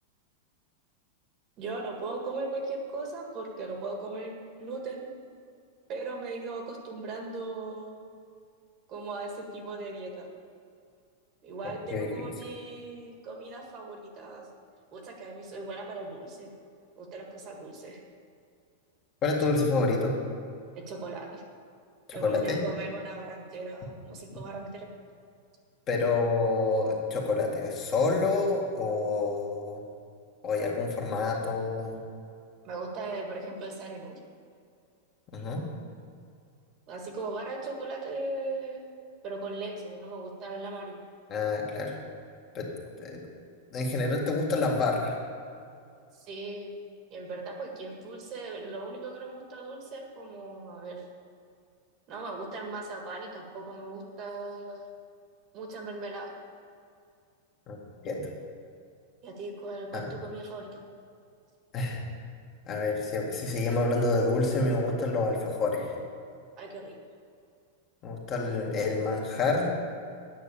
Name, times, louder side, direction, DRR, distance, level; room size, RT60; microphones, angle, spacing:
voice 1, 1.6-5.1 5.9-8.0 8.9-10.3 11.4-14.5 14.9-16.5 17.0-18.0 20.8-21.4 22.1-24.9 32.6-34.1 36.9-38.8 39.2-41.0 46.1-46.7 47.1-51.0 52.1-54.9 55.5-56.3 59.2-60.8 66.6-67.0, right 3 dB, 35° right, 2 dB, 1.8 m, -38 dB
voice 2, 19.2-20.2 22.1-22.6 25.9-29.8 30.4-32.0 35.3-35.6 41.3-41.9 42.5-42.7 43.0-43.2 43.7-45.1 57.7-57.8 58.0-58.3 59.9-60.1 61.7-62.0 62.7-65.9 68.0-69.7, left 3 dB, 30° left, -1 dB, 1.8 m, -28 dB
9.5 x 6.1 x 8.6 m, 2.4 s
supercardioid pair, 150°, 0 cm